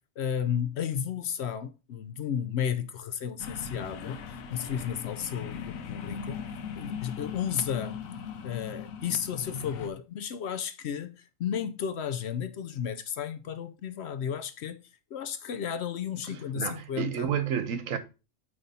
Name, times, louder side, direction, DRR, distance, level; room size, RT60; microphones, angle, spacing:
voice 1, 0.2-6.4 6.7-8.0 8.4-14.8 15.1-17.3, left 8 dB, 65° left, 0.7 m, -33 dB
sound 1, 3.4-9.9, left 6 dB, 90° left, 1.2 m, -39 dB
voice 2, 16.5-18.0, right 8 dB, 80° right, 1.2 m, -30 dB
9.0 x 3.5 x 4.0 m
omnidirectional pair, 1.4 m